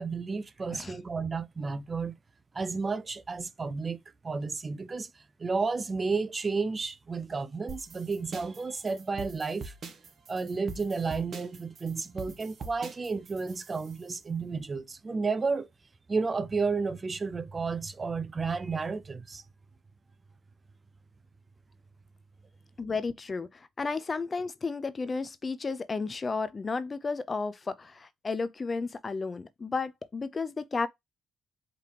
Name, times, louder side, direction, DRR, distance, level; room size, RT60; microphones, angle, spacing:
voice 1, 0.0-2.1 2.5-5.1 5.4-9.7 10.3-15.7 16.1-19.4, right 4 dB, 30° right, 0.6 m, -32 dB
sound 1, 7.7-14.0, right 4 dB, 50° right, 1.5 m, -44 dB
voice 2, 22.8-30.9, left 4 dB, 30° left, 0.6 m, -33 dB
5.0 x 3.3 x 3.0 m
cardioid pair, 90°, 0 cm